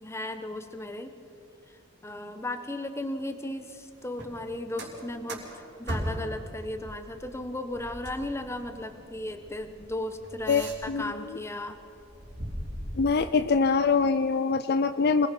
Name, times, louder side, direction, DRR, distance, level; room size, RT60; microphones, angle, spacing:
voice 1, 0.0-1.1 1.7-11.8, left 1 dB, 15° left, 8 dB, 1.3 m, -36 dB
sound 1, 4.1-6.4 6.7-11.2 11.6-13.1, equal, 65° right, 4.3 m, -39 dB
voice 2, 10.5-11.1 13.0-15.3, left 5 dB, 55° left, 12 dB, 0.5 m, -24 dB
26.0 x 20.0 x 6.1 m, 2.5 s
head